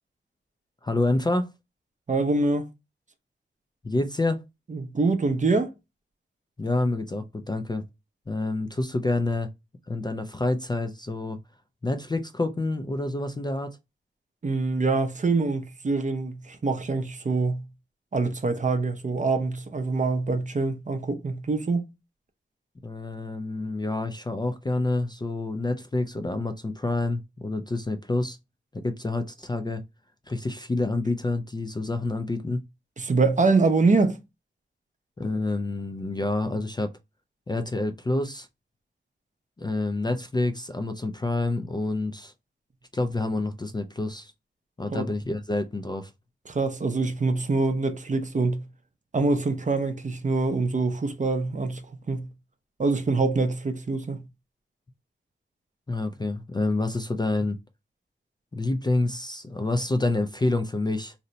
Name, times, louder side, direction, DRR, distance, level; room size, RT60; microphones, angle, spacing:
voice 1, 0.8-1.5 3.8-4.4 6.6-7.8 8.3-9.5 9.9-11.4 11.8-13.8 22.8-28.4 28.8-29.8 30.3-32.6 35.2-36.9 37.5-38.5 39.6-42.3 42.9-44.3 44.8-46.1 55.9-57.6 58.5-61.1, left 2 dB, 20° left, 0.3 m, -28 dB
voice 2, 2.1-2.7 4.7-5.7 14.4-17.6 18.1-21.8 33.0-34.2 44.9-45.1 46.5-48.6 49.1-51.8 52.1-52.3 52.8-54.2, right 3 dB, 35° right, 0.6 m, -25 dB
2.7 x 2.1 x 3.8 m
wide cardioid pair, 75°, 21 cm